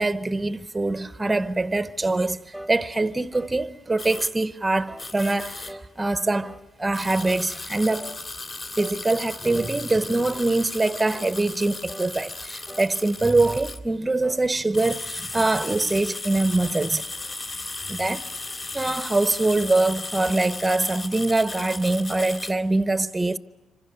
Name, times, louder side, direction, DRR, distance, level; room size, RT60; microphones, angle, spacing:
voice 1, 0.0-2.4 2.7-8.1 8.8-17.0 17.9-18.3 18.7-23.4, right 2 dB, 15° right, 0.8 m, -24 dB
sound 1, 2.5-2.8 3.3-3.6 4.1-4.3 4.9-5.1 5.7-5.9 6.4-6.7 7.2-7.5 8.0-8.2 8.8-9.0 9.5-9.8 10.3-10.6 11.1-11.4 11.9-12.1 12.7-12.9 13.4-13.7 14.2-14.4, equal, ahead, 1.1 m, -41 dB
sound 2, 4.0-4.3 5.0-5.7 6.9-13.8 14.5-22.5, left 3 dB, 45° left, 2.9 m, -36 dB
27.5 x 26.0 x 6.7 m
cardioid pair, 90°, 0 cm